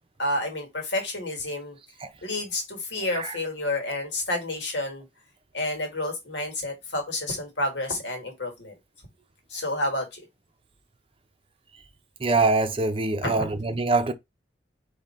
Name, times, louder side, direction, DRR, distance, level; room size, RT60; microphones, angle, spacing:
voice 1, 0.2-1.8 2.2-5.0 5.5-8.7 9.5-10.2 13.2-13.5, left 1 dB, 90° left, 1.8 m, -30 dB
voice 2, 12.2-14.1, right 3 dB, 30° right, 0.6 m, -23 dB
3.8 x 2.8 x 4.3 m
head